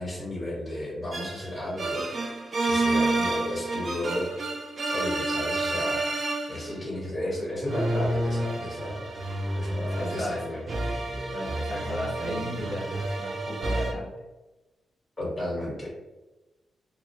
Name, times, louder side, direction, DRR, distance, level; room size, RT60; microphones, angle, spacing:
voice 1, 0.0-2.1 2.6-4.3 4.9-6.1 6.5-9.2 9.5-10.6 15.2-15.9, left 1 dB, 15° left, -6 dB, 1.1 m, -33 dB
sound 1, 1.1-6.8 7.7-13.9, right 2 dB, 40° right, 0.3 m, -29 dB
voice 2, 10.0-10.4 10.7-11.0 11.3-14.1, equal, 35° left, -5 dB, 0.7 m, -35 dB
2.2 x 2.2 x 2.7 m, 1.1 s
wide cardioid pair, 145°, 0 cm